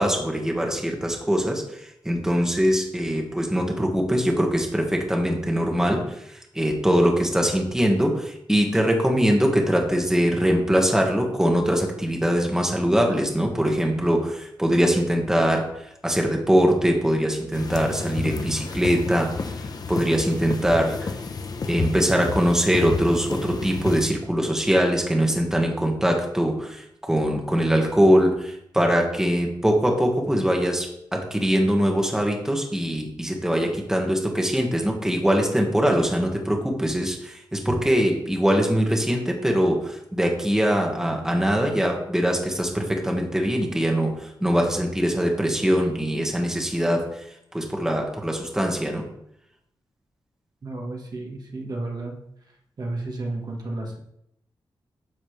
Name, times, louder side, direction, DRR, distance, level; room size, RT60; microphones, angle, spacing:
voice 1, 0.0-21.1 21.7-49.0, equal, 5° right, 1 dB, 1.6 m, -22 dB
sound 1, 17.5-24.0, left 4 dB, 50° left, 0.9 m, -31 dB
voice 2, 50.6-52.2 52.8-54.0, right 2 dB, 50° right, 1 dB, 1.6 m, -32 dB
10.5 x 7.2 x 3.3 m, 0.76 s
wide cardioid pair, 120°, 9 cm